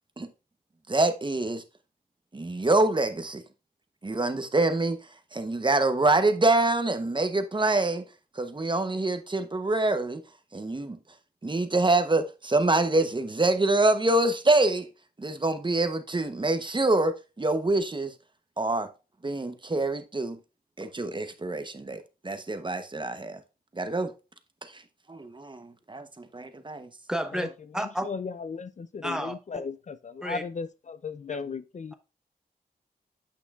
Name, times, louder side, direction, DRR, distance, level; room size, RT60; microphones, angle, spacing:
voice 1, 0.9-1.6 2.3-3.4 4.0-5.0 5.3-8.1 8.3-10.2 10.5-11.0 11.4-14.9 15.2-18.1 18.6-18.9 19.2-20.4 20.8-23.4 23.7-24.1 24.6-24.8 25.1-26.9, right 2 dB, 30° right, 0.8 m, -26 dB
voice 2, 27.1-27.5 27.7-28.1 29.0-29.6 30.2-30.4 31.3-31.4, equal, 5° right, 1.0 m, -31 dB
voice 3, 28.0-31.9, left 5 dB, 50° left, 0.4 m, -36 dB
8.6 x 5.6 x 2.4 m
wide cardioid pair, 80°, 16 cm